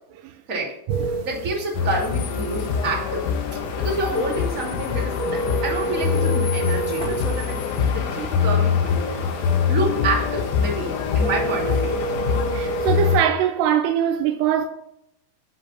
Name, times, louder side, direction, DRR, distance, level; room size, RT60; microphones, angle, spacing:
sound 1, 0.9-13.2, right 2 dB, 60° right, 1.2 m, -32 dB
voice 1, 1.2-3.3 3.8-7.6 7.9-9.3 9.7-12.1, right 2 dB, 25° right, 2.2 m, -28 dB
sound 2, 1.7-13.2, left 6 dB, 75° left, 1.8 m, -24 dB
voice 2, 12.5-14.6, right 10 dB, 80° right, 2.6 m, -22 dB
12.5 x 5.4 x 6.9 m
omnidirectional pair, 5.3 m